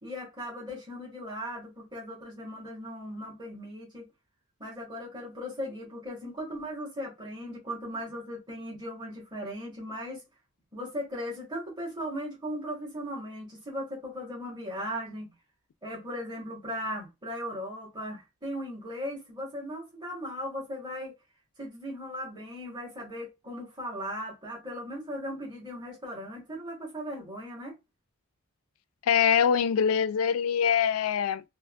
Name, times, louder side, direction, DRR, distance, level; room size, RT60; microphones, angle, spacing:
voice 1, 0.0-4.1 4.6-10.2 10.7-15.3 15.8-21.1 21.6-27.7, equal, 20° right, 1.2 m, -38 dB
voice 2, 29.0-31.4, left 7 dB, 75° left, 0.3 m, -24 dB
3.3 x 2.1 x 2.3 m
head